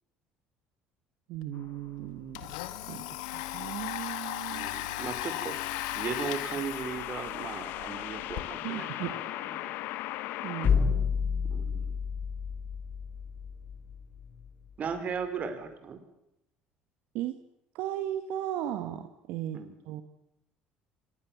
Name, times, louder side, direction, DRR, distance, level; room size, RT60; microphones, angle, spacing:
voice 1, 1.3-2.5 2.9-4.7 8.6-9.2 10.4-11.1 17.1-17.4 17.7-19.6 19.8-20.0, right 12 dB, 70° right, 8 dB, 1.6 m, -36 dB
Domestic sounds home sounds, 1.4-1.5 1.8-8.4, left 14 dB, 85° left, 1.7 m, -37 dB
sound 1, 1.5-1.9 5.5-10.7, left 16 dB, 70° left, 1.1 m, -38 dB
voice 2, 4.5-9.2 9.6-9.7 11.5-11.9 14.8-16.0 19.5-19.7, right 6 dB, 45° right, 9 dB, 4.6 m, -37 dB
sound 2, 10.6-14.5, left 6 dB, 45° left, 7.2 m, -30 dB
25.0 x 20.0 x 7.4 m, 0.85 s
supercardioid pair, 85°, 3 cm